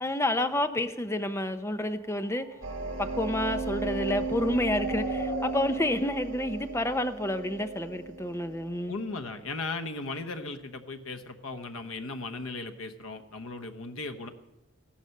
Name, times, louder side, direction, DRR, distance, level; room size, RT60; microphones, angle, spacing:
voice 1, 0.0-2.5 3.0-9.0, left 1 dB, 15° left, 9 dB, 0.6 m, -29 dB
sound 1, 1.9-7.7, equal, 50° right, 5.0 m, -42 dB
sound 2, 2.6-9.1, right 3 dB, 85° right, 1.8 m, -35 dB
voice 2, 8.9-14.3, left 3 dB, 90° left, 8 dB, 1.1 m, -37 dB
15.0 x 11.5 x 6.6 m, 1.1 s
head